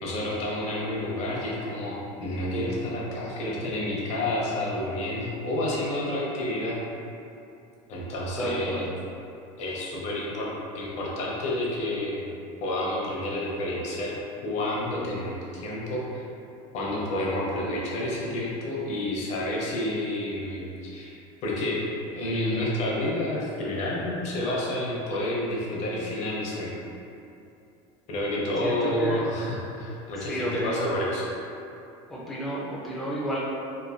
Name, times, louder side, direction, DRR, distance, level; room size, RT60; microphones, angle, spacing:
voice 1, 0.0-6.8 7.9-8.8 9.6-10.5 10.7-12.3 12.6-14.1 14.4-16.2 16.7-21.1 21.4-21.9 22.1-26.8 28.1-31.3, left 1 dB, 50° left, -4 dB, 0.6 m, -29 dB
voice 2, 8.4-8.8 28.6-29.2 30.2-30.9 32.1-33.4, equal, ahead, -8 dB, 0.3 m, -32 dB
3.0 x 2.2 x 2.3 m, 2.7 s
cardioid pair, 140°, 16 cm